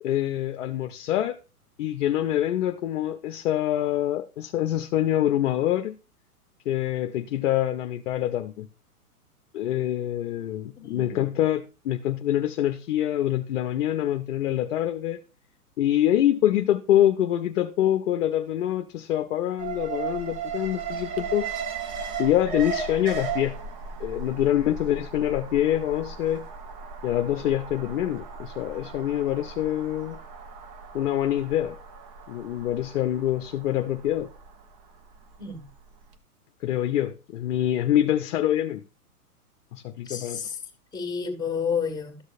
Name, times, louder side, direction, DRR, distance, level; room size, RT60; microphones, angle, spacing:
voice 1, 0.0-1.4 1.8-6.0 6.7-8.7 9.5-15.2 15.8-21.5 22.2-23.5 24.0-26.5 27.0-30.2 30.9-31.8 32.3-34.3 36.6-38.8 39.7-40.4, left 12 dB, 55° left, 0.7 m, -25 dB
voice 2, 10.8-11.2 35.4-35.6 40.1-40.6 40.9-42.2, left 6 dB, 10° left, 1.7 m, -30 dB
Alarm, 19.6-35.7 36.0-36.1, right 5 dB, 20° right, 0.5 m, -36 dB
13.0 x 6.3 x 2.5 m
hypercardioid pair, 115°, 46 cm